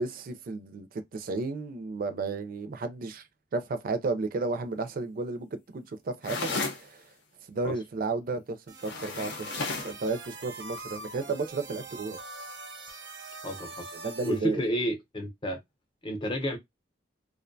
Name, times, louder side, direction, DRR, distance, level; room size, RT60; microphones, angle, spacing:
voice 1, 0.0-3.3 3.5-7.1 7.5-9.5 9.8-12.2 13.9-14.6, right 3 dB, 50° right, 0.4 m, -33 dB
sound 1, 6.2-6.8 8.8-10.0, left 3 dB, 65° left, 0.7 m, -33 dB
sound 2, 8.7-14.4, right 2 dB, 90° right, 0.6 m, -43 dB
voice 2, 13.4-13.9 14.3-15.6 16.0-16.6, equal, 30° left, 0.7 m, -30 dB
2.5 x 2.1 x 2.5 m
head